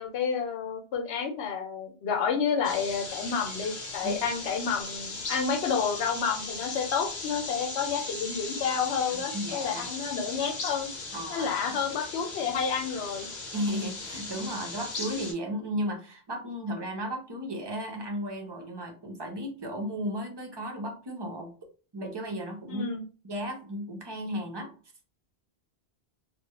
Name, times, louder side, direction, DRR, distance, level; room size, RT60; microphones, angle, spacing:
voice 1, 0.0-10.9 11.3-13.3 22.7-23.0, left 6 dB, 85° left, 4 dB, 0.9 m, -30 dB
sound 1, 2.6-15.3, left 3 dB, 50° left, 0.7 m, -38 dB
voice 2, 9.3-9.8 11.1-11.5 13.5-21.5 21.9-22.9 23.2-24.7, equal, 40° right, 1 dB, 0.3 m, -34 dB
2.2 x 2.1 x 2.8 m, 0.37 s
omnidirectional pair, 1.1 m